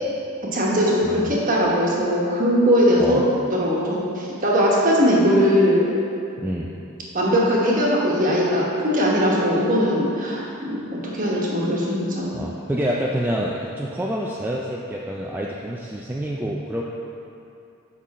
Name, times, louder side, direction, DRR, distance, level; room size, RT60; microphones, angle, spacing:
voice 1, 0.5-3.2 3.5-5.9 7.1-12.3, equal, 40° right, -4 dB, 1.3 m, -20 dB
voice 2, 6.4-6.7 12.3-16.8, equal, 10° right, -3 dB, 0.3 m, -27 dB
7.4 x 5.5 x 4.2 m, 2.7 s
head